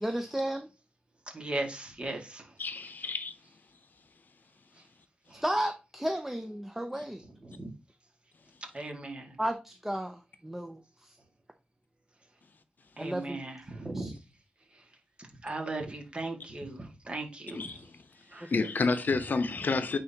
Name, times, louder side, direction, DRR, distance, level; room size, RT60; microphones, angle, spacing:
voice 1, 0.0-0.7 5.4-7.2 9.4-11.1 13.0-13.4 13.8-14.1 18.4-18.7, right 1 dB, 5° right, 0.5 m, -33 dB
voice 2, 1.3-2.4 5.3-5.4 7.6-7.7 8.7-9.4 13.0-14.1 15.4-17.6 18.3-18.5, right 2 dB, 30° right, 1.7 m, -37 dB
voice 3, 2.6-3.3 17.5-18.0 18.5-20.0, left 4 dB, 60° left, 0.7 m, -30 dB
9.2 x 3.9 x 2.8 m
wide cardioid pair, 115°, 4 cm